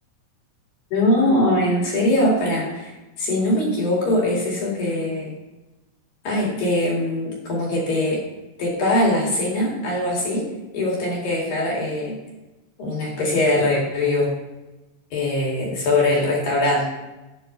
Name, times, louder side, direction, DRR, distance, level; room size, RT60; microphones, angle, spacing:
voice 1, 0.9-2.9 3.2-5.3 6.2-8.2 8.6-12.2 12.8-14.3 15.1-16.9, left 1 dB, 50° left, -3 dB, 3.8 m, -22 dB
12.0 x 9.3 x 3.3 m, 1.1 s
omnidirectional pair, 5.8 m